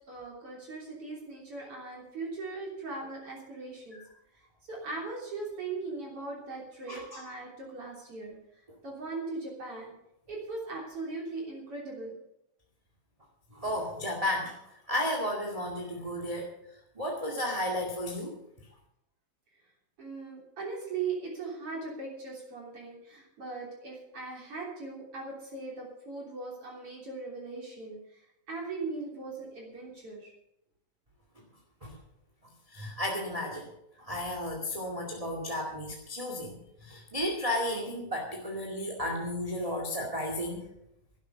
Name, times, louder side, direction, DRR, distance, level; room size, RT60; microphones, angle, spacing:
voice 1, 0.1-4.0 4.7-8.4 8.8-9.9 10.3-12.1 20.0-28.0 28.5-30.3, right 3 dB, 45° right, -2 dB, 4.1 m, -39 dB
voice 2, 6.9-7.2 13.5-14.5 14.9-16.5 16.9-18.3 31.8-31.9 32.7-33.7 34.0-36.6 36.8-40.7, left 1 dB, 15° right, 0 dB, 1.7 m, -33 dB
12.5 x 11.0 x 6.9 m, 0.81 s
omnidirectional pair, 3.7 m